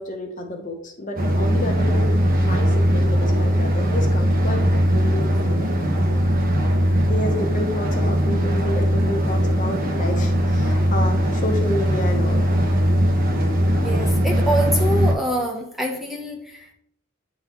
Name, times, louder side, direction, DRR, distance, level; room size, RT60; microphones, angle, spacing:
voice 1, 0.0-2.1 2.4-5.9 7.1-12.4, left 1 dB, 40° left, 4 dB, 0.8 m, -30 dB
sound 1, 1.2-15.1, equal, 45° right, 0.9 m, -20 dB
voice 2, 13.8-16.7, equal, ahead, 0 dB, 0.7 m, -25 dB
8.9 x 3.9 x 3.0 m, 0.74 s
head